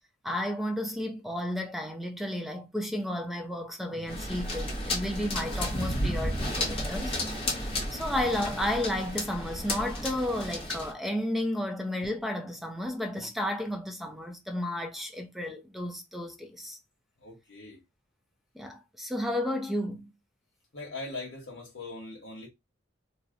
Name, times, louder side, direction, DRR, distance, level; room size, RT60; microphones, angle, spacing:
voice 1, 0.2-7.2 7.9-16.8 18.5-20.1, left 1 dB, ahead, 0.5 m, -32 dB
sound 1, 4.1-10.9, left 1 dB, 30° left, 0.9 m, -32 dB
voice 2, 17.2-17.8 20.7-22.5, left 2 dB, 75° left, 1.1 m, -40 dB
2.7 x 2.1 x 3.6 m
head